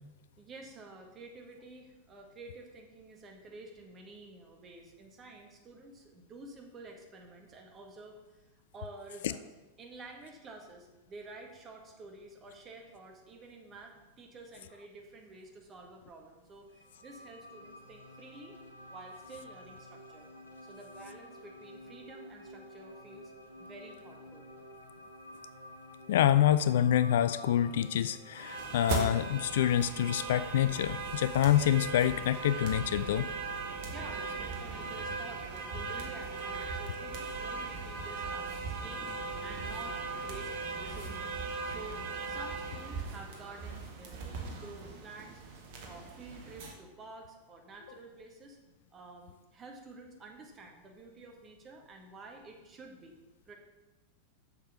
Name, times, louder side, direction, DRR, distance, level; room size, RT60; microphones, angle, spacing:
voice 1, 0.4-9.5 9.8-18.6 18.9-20.3 20.6-23.3 23.6-24.5 33.8-45.4 45.8-48.6 48.9-53.2 53.4-53.5, right 3 dB, 25° right, 2 dB, 1.7 m, -50 dB
sound 1, 16.7-28.7, equal, 90° right, 1.7 m, -51 dB
voice 2, 26.1-33.3, left 11 dB, 60° left, 14 dB, 0.3 m, -27 dB
sound 2, 28.3-46.7, right 4 dB, 50° right, 1.6 m, -38 dB
7.2 x 6.6 x 6.2 m, 1.2 s
figure-of-eight pair, 90°, 0 cm